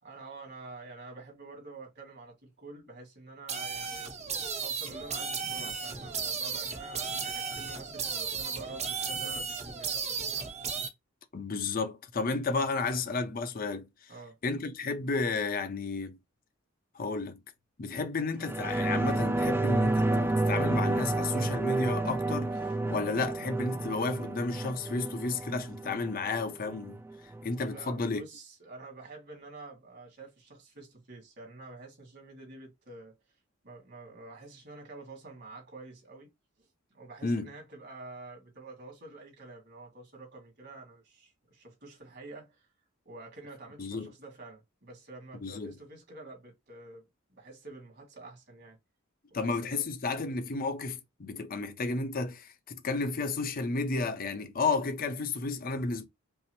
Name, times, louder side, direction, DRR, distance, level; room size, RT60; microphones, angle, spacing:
voice 1, 0.0-4.1 4.6-10.5 14.1-14.4 27.7-33.2 33.6-36.3 36.6-42.7 43.1-48.8 49.3-50.2, right 3 dB, 60° right, 2.0 m, -48 dB
sound 1, 3.5-10.9, right 5 dB, 35° right, 0.8 m, -35 dB
voice 2, 11.3-14.1 14.4-16.2 16.9-17.4 17.8-22.6 22.9-27.0 27.4-28.3 37.2-37.5 43.8-44.1 45.4-45.8 49.3-56.1, left 3 dB, 45° left, 0.7 m, -32 dB
sound 2, 18.4-27.4 27.8-27.9, right 2 dB, 10° right, 0.3 m, -30 dB
5.4 x 2.0 x 3.0 m
head